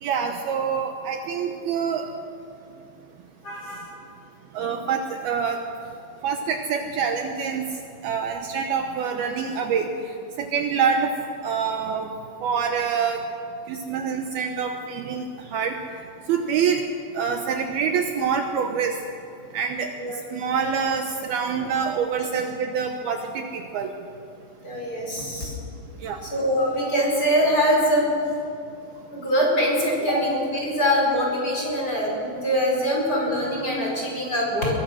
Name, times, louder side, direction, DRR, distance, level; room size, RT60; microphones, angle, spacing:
voice 1, 0.0-2.1 4.5-5.6 6.2-7.6 8.0-9.9 10.4-11.1 11.4-12.1 12.4-13.3 13.7-15.8 16.3-16.8 17.1-19.0 19.5-23.9 26.0-26.2 30.1-30.2, right 6 dB, 70° right, 4 dB, 2.7 m, -26 dB
voice 2, 3.4-3.9 20.0-20.2 24.6-25.6 26.2-28.1 29.1-34.7, equal, 20° left, -2 dB, 5.4 m, -23 dB
23.5 x 21.5 x 6.3 m, 2.5 s
omnidirectional pair, 5.0 m